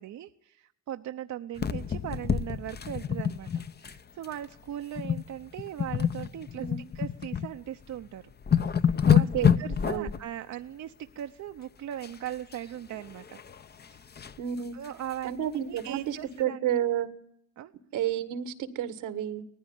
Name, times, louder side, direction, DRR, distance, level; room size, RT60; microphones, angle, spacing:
voice 1, 0.0-3.5 3.8-6.7 6.9-8.2 8.7-8.8 9.1-9.3 9.6-13.4 13.9-14.0 14.7-17.0 17.6-17.7, right 11 dB, 65° right, 7 dB, 0.9 m, -39 dB
sound 1, 1.6-4.0 4.2-4.4 4.9-5.3 5.6-7.5 7.9-8.0 8.3-10.2 12.0-12.6 12.9-14.4 14.8-14.9 15.2-15.3 15.8-15.9, left 8 dB, 35° left, 0.9 m, -27 dB
voice 2, 6.6-6.9 9.1-9.5 9.9-10.1 14.4-14.8 15.2-17.2 17.9-19.4, right 10 dB, 85° right, 13 dB, 1.7 m, -31 dB
19.0 x 14.5 x 9.7 m, 0.71 s
cardioid pair, 90°, 30 cm